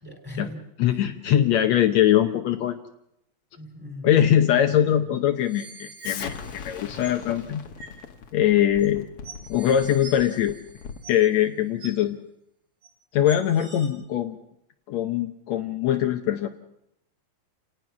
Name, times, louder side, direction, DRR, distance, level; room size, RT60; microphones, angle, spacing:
voice 1, 0.0-0.6 0.9-1.0 3.6-4.2 4.5-4.8, left 1 dB, 5° right, 4 dB, 3.8 m, -39 dB
voice 2, 0.8-2.8 4.0-7.6 8.3-9.1 9.5-10.6 11.1-12.2 13.1-14.4 14.9-16.5, left 10 dB, 70° left, 6 dB, 2.1 m, -22 dB
sound 1, 5.4-7.2 7.8-8.0 8.8-8.9 9.2-11.4 11.8-11.9 12.8-12.9 13.3-13.9, right 3 dB, 85° right, 5.4 m, -45 dB
Explosion, 6.0-11.1, left 6 dB, 55° left, 2.2 m, -40 dB
28.5 x 18.0 x 6.1 m, 0.77 s
omnidirectional pair, 3.3 m